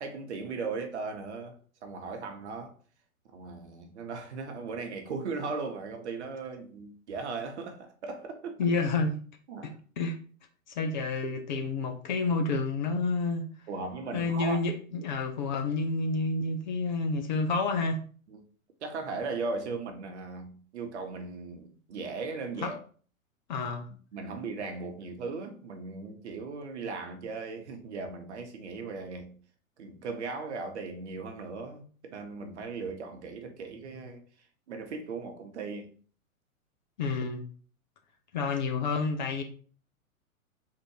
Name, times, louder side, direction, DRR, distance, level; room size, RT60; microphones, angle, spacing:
voice 1, 0.0-1.6 1.8-2.7 3.3-8.6 9.5-9.7 13.7-14.6 18.3-18.4 18.8-22.8 24.1-29.3 29.8-34.2 34.7-35.9, right 4 dB, 55° right, 1.1 m, -37 dB
voice 2, 8.6-9.1 9.6-10.2 10.7-13.4 14.1-18.0 22.6-22.7 23.5-23.9 37.0-37.4 38.3-39.4, left 3 dB, 35° left, 0.5 m, -29 dB
3.8 x 2.5 x 4.6 m
figure-of-eight pair, 110°, 42 cm